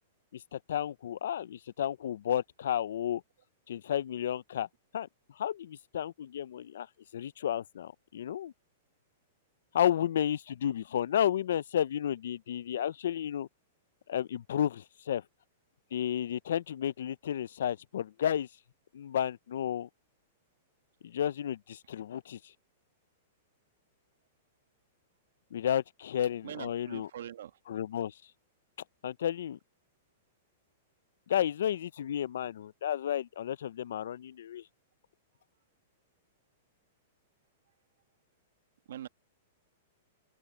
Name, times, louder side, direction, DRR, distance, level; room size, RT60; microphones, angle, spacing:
voice 1, 0.3-3.2 3.7-4.7 4.9-5.1 5.4-6.9 7.1-8.5 9.7-13.5 14.1-15.2 15.9-18.5 18.9-19.9 21.0-22.5 25.5-27.1 27.7-28.2 29.0-29.6 31.3-34.6, left 10 dB, 75° left, 0.5 m, -32 dB
voice 2, 26.4-27.6 38.9-39.1, right 10 dB, 80° right, 1.4 m, -43 dB
open air
hypercardioid pair, 150°, 0 cm